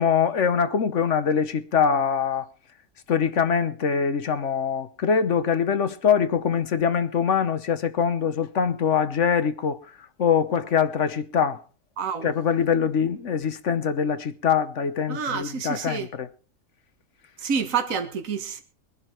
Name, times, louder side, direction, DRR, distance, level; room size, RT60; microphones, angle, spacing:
voice 1, 0.0-2.4 3.1-9.8 10.2-11.6 12.2-16.3, left 7 dB, 55° left, 1.2 m, -23 dB
voice 2, 12.0-12.3 15.1-16.1 17.4-18.6, right 6 dB, 55° right, 1.9 m, -28 dB
21.5 x 11.0 x 4.5 m
omnidirectional pair, 1.7 m